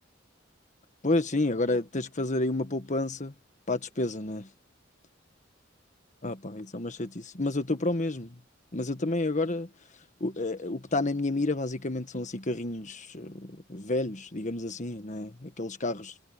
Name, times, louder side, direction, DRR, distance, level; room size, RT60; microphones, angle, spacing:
voice 1, 1.0-3.3 3.7-4.5 6.2-8.4 8.7-9.7 10.2-16.1, left 2 dB, 40° left, 1.6 m, -30 dB
head